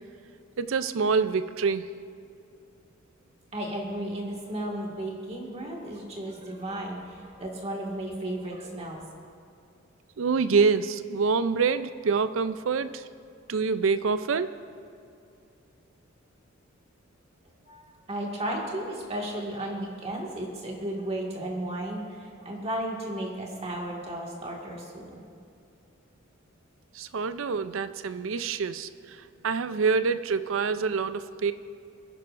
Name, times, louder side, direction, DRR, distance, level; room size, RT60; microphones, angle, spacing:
voice 1, 0.6-1.9 10.2-13.0 13.5-14.6 26.9-29.2 29.4-31.5, right 5 dB, 70° right, 12 dB, 0.5 m, -26 dB
voice 2, 3.5-9.1 17.6-25.2, right 1 dB, 30° right, -2 dB, 1.9 m, -34 dB
25.0 x 10.5 x 2.6 m, 2.5 s
head